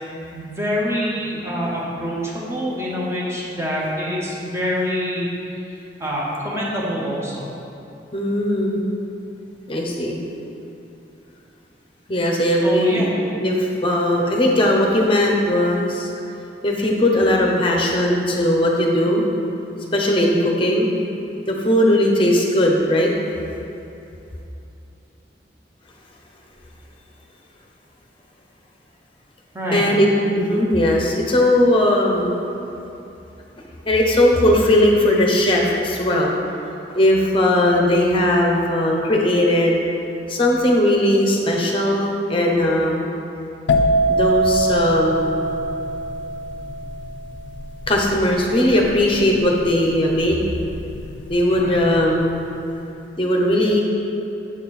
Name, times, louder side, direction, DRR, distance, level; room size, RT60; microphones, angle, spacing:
voice 1, 0.3-5.3 6.0-7.5 12.6-13.1 29.5-29.8 51.5-51.8, equal, 15° right, -5 dB, 1.0 m, -25 dB
voice 2, 8.1-8.8 9.7-10.2 12.1-13.0 13.4-16.1 16.6-19.2 19.9-20.9 21.5-23.1 29.7-30.1 30.4-32.3 33.9-36.4 36.9-39.8 40.3-43.0 44.1-45.4 47.9-50.4 51.3-52.4 53.2-53.8, left 1 dB, 30° left, 0 dB, 0.7 m, -18 dB
sound 1, 43.7-51.3 51.5-52.0, right 1 dB, 85° left, 0.4 m, -22 dB
7.4 x 4.2 x 4.2 m, 2.8 s
head